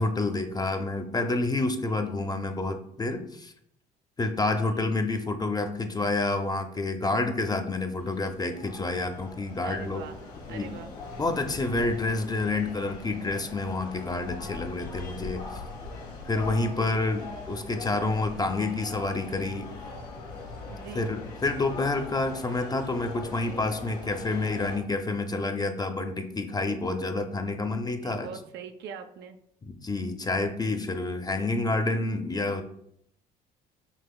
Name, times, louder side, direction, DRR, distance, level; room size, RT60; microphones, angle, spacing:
voice 1, 0.0-3.5 4.2-10.0 10.5-10.8 11.2-15.6 16.3-19.7 20.9-28.3 29.6-32.6, left 2 dB, 20° left, 7 dB, 0.5 m, -28 dB
voice 2, 1.8-2.2 4.5-4.8 9.6-10.2 10.5-11.0 20.7-21.1 28.0-29.4, right 7 dB, 60° right, 7 dB, 0.5 m, -42 dB
sound 1, 8.0-24.8, left 3 dB, 90° left, 0.8 m, -41 dB
5.5 x 2.9 x 2.2 m, 0.71 s
hypercardioid pair, 60°, 21 cm